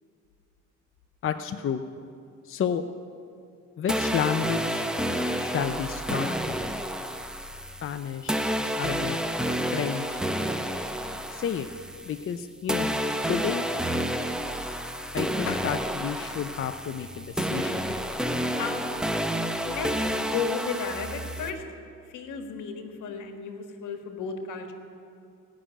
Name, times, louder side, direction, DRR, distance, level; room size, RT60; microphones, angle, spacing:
voice 1, 1.2-1.8 2.5-2.8 3.8-4.8 5.2-6.7 7.8-8.4 8.8-9.2 9.7-10.2 11.3-11.7 12.1-12.9 13.3-13.7 15.1-17.8, left 8 dB, 45° left, 8 dB, 0.6 m, -31 dB
sound 1, 3.9-12.4 12.7-21.5, equal, ahead, 0.8 m, -30 dB
voice 2, 18.5-19.3 19.6-21.6 22.1-24.7, left 6 dB, 80° left, 6 dB, 1.5 m, -34 dB
18.0 x 6.2 x 9.0 m, 2.5 s
cardioid pair, 90°, 30 cm